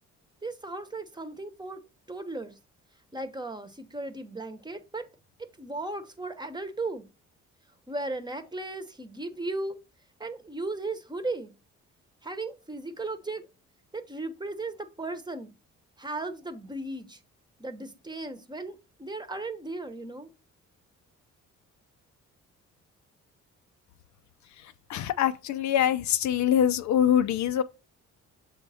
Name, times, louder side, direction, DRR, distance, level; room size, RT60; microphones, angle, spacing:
voice 1, 0.4-2.6 3.1-5.1 5.4-7.1 7.9-9.8 10.2-11.5 12.2-13.5 13.9-15.5 16.0-17.2 17.6-20.3, right 2 dB, 15° right, 1.0 m, -36 dB
voice 2, 24.9-27.6, left 10 dB, 70° left, 0.6 m, -24 dB
7.2 x 3.5 x 4.2 m
cardioid pair, 90°, 30 cm